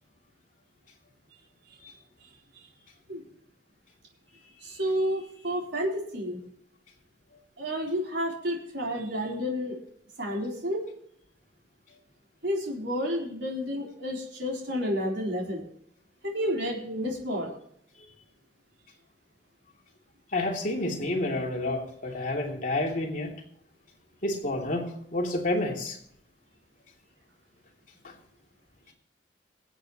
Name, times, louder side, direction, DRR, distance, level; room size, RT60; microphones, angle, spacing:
voice 1, 4.6-6.4 7.6-9.8 10.2-10.8 12.4-15.6 16.2-17.6, equal, 80° right, -1 dB, 3.7 m, -30 dB
voice 2, 20.3-23.3 24.2-26.0 28.0-28.1, left 2 dB, 50° left, 0 dB, 2.8 m, -29 dB
24.0 x 8.3 x 3.0 m, 0.68 s
head